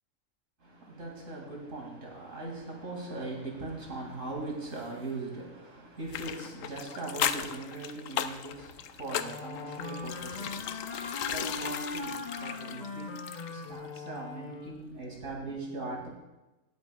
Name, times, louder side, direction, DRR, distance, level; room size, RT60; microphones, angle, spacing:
voice 1, 0.6-16.1, right 2 dB, 80° right, -2 dB, 2.9 m, -40 dB
sound 1, 6.1-13.7 14.0-14.1, left 9 dB, 85° left, 1.0 m, -36 dB
Wind instrument woodwind instrument, 9.2-14.9, left 3 dB, 35° left, 0.9 m, -40 dB
19.5 x 8.2 x 2.4 m, 1.0 s
omnidirectional pair, 1.3 m